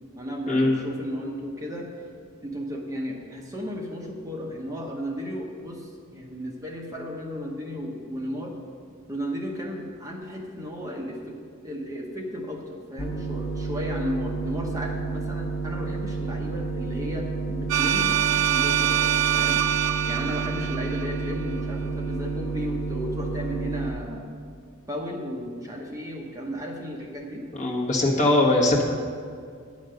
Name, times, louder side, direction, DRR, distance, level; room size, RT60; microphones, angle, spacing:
voice 1, 0.1-1.9 2.4-8.5 9.1-11.4 11.6-18.2 18.4-19.0 19.3-19.6 20.1-24.3 24.9-27.5, equal, 15° right, -1 dB, 0.9 m, -34 dB
sound 1, 13.0-23.9, right 4 dB, 65° left, 1.0 m, -31 dB
sound 2, 17.7-21.6, right 10 dB, 85° right, 0.5 m, -25 dB
voice 2, 27.5-28.8, left 2 dB, 35° left, -2 dB, 1.5 m, -21 dB
9.9 x 5.2 x 7.6 m, 2.2 s
head